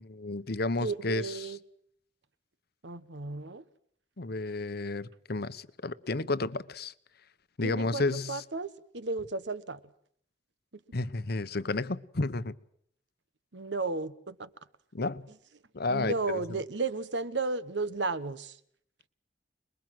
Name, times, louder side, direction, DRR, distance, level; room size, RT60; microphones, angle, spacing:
voice 1, 0.0-1.3 4.2-6.9 7.6-8.4 10.9-12.5 14.9-15.2 15.7-16.1, left 2 dB, 60° left, 1.0 m, -31 dB
voice 2, 0.8-1.6 2.8-3.6 7.6-8.0 8.3-9.8 13.5-14.5 15.9-18.6, right 3 dB, 75° right, 1.3 m, -34 dB
27.0 x 21.5 x 7.8 m
head